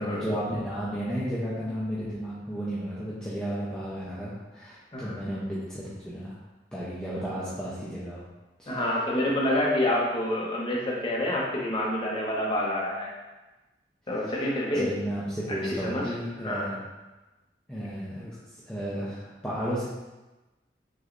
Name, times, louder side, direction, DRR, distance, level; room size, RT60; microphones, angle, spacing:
voice 1, 0.0-6.4 6.7-8.2 8.6-9.0 14.7-16.8 17.7-18.3 18.7-19.8, equal, 5° left, -10 dB, 0.7 m, -33 dB
voice 2, 8.7-13.1 14.1-14.9 15.8-16.2 16.4-16.7, left 1 dB, 30° left, -4 dB, 1.0 m, -27 dB
6.2 x 3.2 x 2.6 m, 1.1 s
head